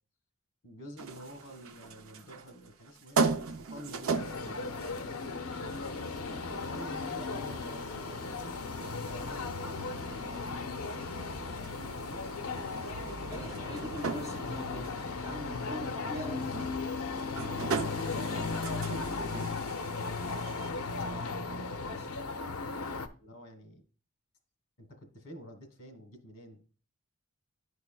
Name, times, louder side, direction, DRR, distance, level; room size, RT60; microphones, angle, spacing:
voice 1, 0.6-5.8 6.6-13.6 15.6-16.2 17.6-19.5 19.8-20.6 21.6-21.9 23.2-23.8 24.8-26.6, equal, 60° left, 7 dB, 1.7 m, -49 dB
sound 1, 1.0-20.7, right 4 dB, 65° right, 0.5 m, -39 dB
sound 2, 4.1-23.1, left 4 dB, 75° left, 0.6 m, -36 dB
voice 2, 13.3-14.9 15.1-16.5 21.0-21.4 21.8-22.1, equal, 15° right, -5 dB, 3.6 m, -41 dB
11.0 x 4.8 x 2.3 m, 0.38 s
head